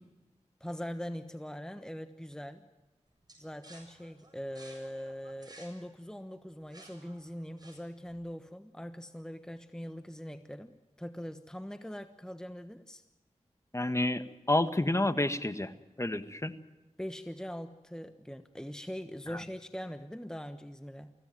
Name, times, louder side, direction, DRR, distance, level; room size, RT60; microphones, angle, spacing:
voice 1, 0.6-2.7 3.4-13.0 17.0-21.1, equal, 5° left, 9 dB, 1.2 m, -42 dB
sound 1, 3.3-8.1, right 1 dB, 35° right, 7.8 m, -55 dB
voice 2, 13.7-15.7 16.0-16.5 19.3-19.4, left 1 dB, 25° left, 10 dB, 1.6 m, -29 dB
24.0 x 16.5 x 9.2 m, 1.1 s
cardioid pair, 40°, 12 cm